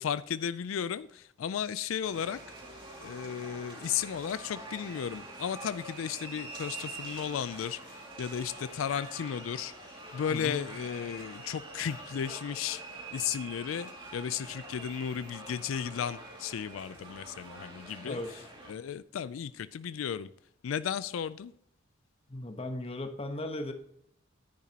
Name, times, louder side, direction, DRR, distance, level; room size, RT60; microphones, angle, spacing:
voice 1, 0.0-2.4 3.0-18.2 18.7-20.3 20.6-21.5, left 8 dB, 90° left, 0.4 m, -35 dB
sound 1, 2.0-18.7, right 2 dB, 25° right, 2.3 m, -45 dB
voice 2, 10.3-10.6 18.0-18.3 22.3-23.7, left 1 dB, 30° left, 1.1 m, -36 dB
10.5 x 9.8 x 2.9 m
head